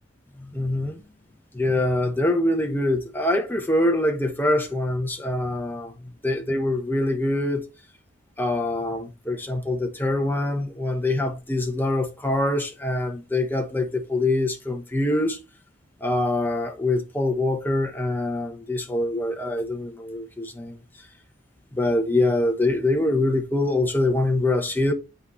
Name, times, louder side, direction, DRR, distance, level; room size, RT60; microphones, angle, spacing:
voice 1, 0.4-1.0 1.5-5.9 6.2-7.6 8.4-15.4 16.0-20.8 21.7-24.9, left 2 dB, 10° left, 1.0 m, -24 dB
8.2 x 4.1 x 3.1 m
head